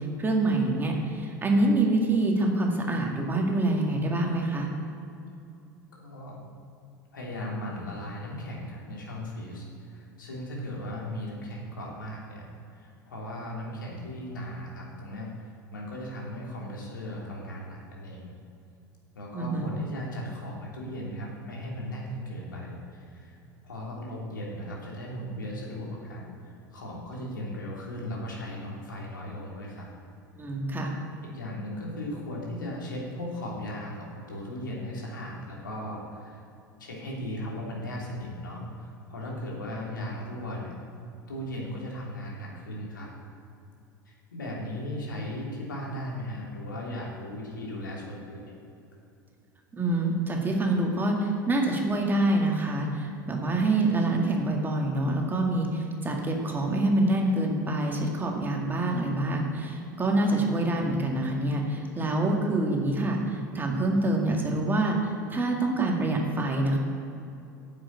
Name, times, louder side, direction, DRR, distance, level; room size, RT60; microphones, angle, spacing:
voice 1, 0.0-4.7 19.3-19.7 30.4-30.9 49.7-66.8, right 2 dB, 20° right, 1 dB, 2.1 m, -26 dB
voice 2, 5.9-6.4 7.1-12.5 12.7-15.3 15.7-18.3 19.1-23.4 23.6-29.9 30.9-36.4 36.8-40.7 41.3-43.1 44.0-48.5, left 1 dB, 75° left, -3 dB, 3.0 m, -37 dB
10.0 x 7.4 x 8.5 m, 2.6 s
figure-of-eight pair, 75°, 11 cm